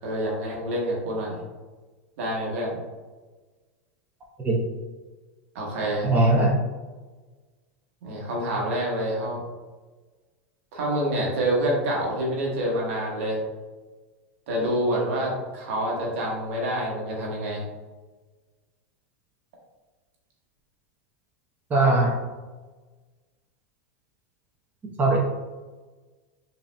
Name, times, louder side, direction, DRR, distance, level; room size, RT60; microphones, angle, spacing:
voice 1, 0.0-1.4 2.2-2.8 5.5-6.1 8.0-9.4 10.7-13.4 14.5-17.6, right 1 dB, 70° right, -2 dB, 1.2 m, -27 dB
voice 2, 6.0-6.5 21.7-22.1 25.0-25.2, right 2 dB, 25° right, -2 dB, 0.7 m, -20 dB
5.0 x 2.7 x 2.2 m, 1.3 s
hypercardioid pair, 100°, 7 cm